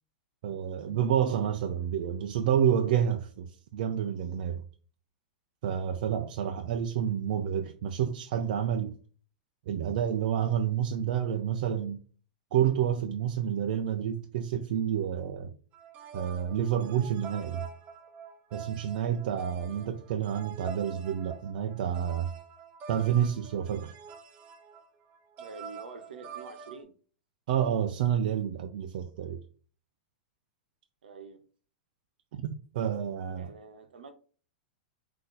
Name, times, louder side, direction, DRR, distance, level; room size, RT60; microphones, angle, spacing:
voice 1, 0.4-4.6 5.6-9.0 9.7-12.0 12.5-15.5 16.1-17.7 18.5-22.3 22.9-23.9 27.5-29.4 32.3-32.4 32.7-33.5, right 9 dB, 65° right, 0.5 m, -29 dB
sound 1, 15.7-26.8, right 6 dB, 35° right, 0.8 m, -46 dB
voice 2, 25.4-26.9 31.0-31.4 33.4-34.1, right 4 dB, 85° right, 0.9 m, -46 dB
4.0 x 2.8 x 3.8 m
hypercardioid pair, 125°, 5 cm